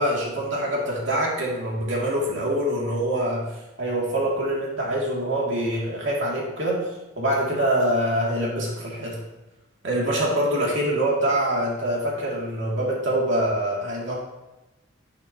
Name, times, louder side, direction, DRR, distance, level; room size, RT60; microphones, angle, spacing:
voice 1, 0.0-6.9 7.2-9.2 9.8-14.1, right 1 dB, 65° right, -3 dB, 2.5 m, -25 dB
11.0 x 8.6 x 2.9 m, 1.0 s
head